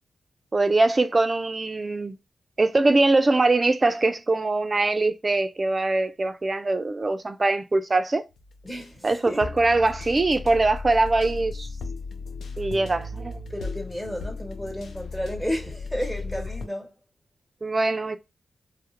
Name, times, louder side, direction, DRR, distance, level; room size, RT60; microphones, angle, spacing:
voice 1, 0.5-2.2 2.6-8.2 9.0-11.7 12.6-13.4 17.6-18.2, right 2 dB, 35° right, 0.3 m, -22 dB
sound 1, 8.3-16.7, left 4 dB, 85° left, 0.4 m, -36 dB
voice 2, 8.6-9.4 13.5-16.9, equal, 10° left, 1.1 m, -32 dB
2.3 x 2.0 x 2.8 m
cardioid pair, 60°, 0 cm